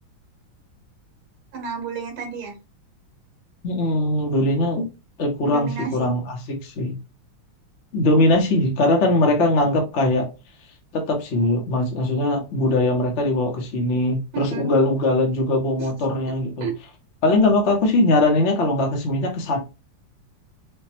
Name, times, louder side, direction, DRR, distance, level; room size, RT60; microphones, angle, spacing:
voice 1, 1.5-2.6 5.4-6.1 14.3-14.7 15.8-15.9 16.6-16.7, right 6 dB, 80° right, 2.1 m, -31 dB
voice 2, 3.6-4.9 5.2-7.0 7.9-10.3 10.9-16.7 17.2-19.6, left 2 dB, 45° left, 1.0 m, -21 dB
5.0 x 2.3 x 2.9 m
omnidirectional pair, 2.3 m